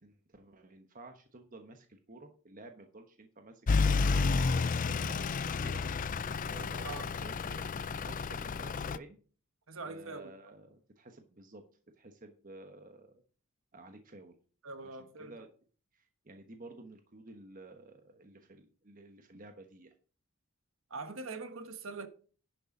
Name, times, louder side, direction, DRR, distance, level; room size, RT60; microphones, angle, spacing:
voice 1, 0.0-5.8 6.5-9.2 9.8-11.6 12.0-13.2 13.7-14.4 14.8-15.5 15.9-19.9, right 2 dB, 40° right, 1.2 m, -52 dB
Truck / Idling, 3.7-9.0, left 4 dB, 40° left, 0.4 m, -31 dB
voice 2, 9.7-10.3 14.6-15.3 20.9-22.1, right 3 dB, 70° right, 1.3 m, -42 dB
11.0 x 6.6 x 5.3 m
head